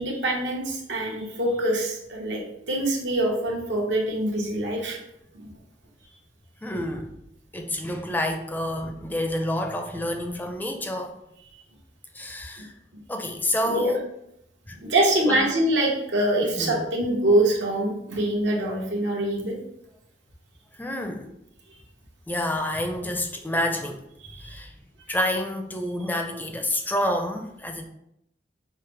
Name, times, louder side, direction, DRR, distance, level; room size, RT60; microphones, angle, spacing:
voice 1, 0.0-2.4 2.7-5.0 5.4-5.5 13.7-13.9 14.8-19.5 24.2-24.5, right 1 dB, 85° right, -1 dB, 1.0 m, -24 dB
voice 2, 6.6-7.1 7.5-11.1 12.1-12.7 13.1-14.0 14.7-15.4 16.6-16.9 20.7-21.3 22.3-24.1 24.4-24.7 25.1-27.8, left 1 dB, 10° left, 4 dB, 0.4 m, -28 dB
5.6 x 2.1 x 3.2 m, 0.79 s
head